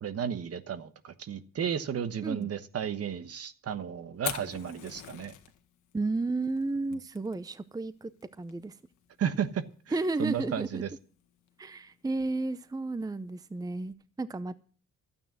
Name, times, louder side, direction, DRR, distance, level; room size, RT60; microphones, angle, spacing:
voice 1, 0.0-5.3 9.2-9.6 10.2-10.9, right 8 dB, 50° right, 12 dB, 1.2 m, -33 dB
Fire, 4.1-13.9, left 11 dB, 75° left, 1.8 m, -46 dB
voice 2, 5.9-8.1 8.4-8.8 9.9-10.8 11.6-14.6, right 3 dB, 10° right, 15 dB, 0.6 m, -32 dB
12.5 x 8.9 x 7.4 m, 0.42 s
cardioid pair, 90°, 30 cm